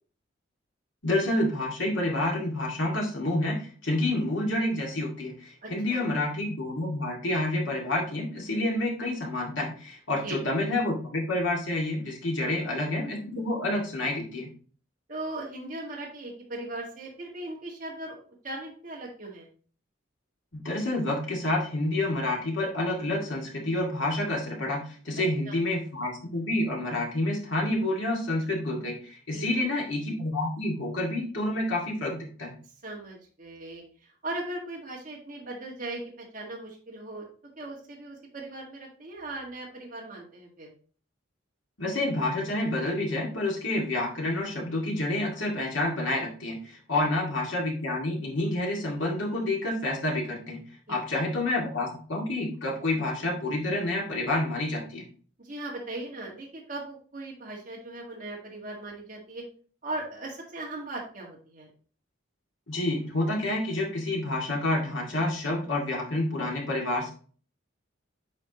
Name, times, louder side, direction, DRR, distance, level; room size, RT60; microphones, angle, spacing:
voice 1, 1.0-14.5 20.5-32.5 41.8-50.6 50.9-55.0 62.7-67.1, left 1 dB, 75° left, -1 dB, 2.1 m, -28 dB
voice 2, 5.6-6.0 10.2-10.4 12.4-12.7 15.1-18.2 18.4-19.5 25.5-25.6 29.3-29.6 32.8-33.8 34.2-37.3 37.6-40.7 46.9-47.0 50.9-51.2 55.4-59.4 59.8-61.7, right 2 dB, 40° right, -2 dB, 1.7 m, -38 dB
8.5 x 4.6 x 2.9 m, 0.42 s
head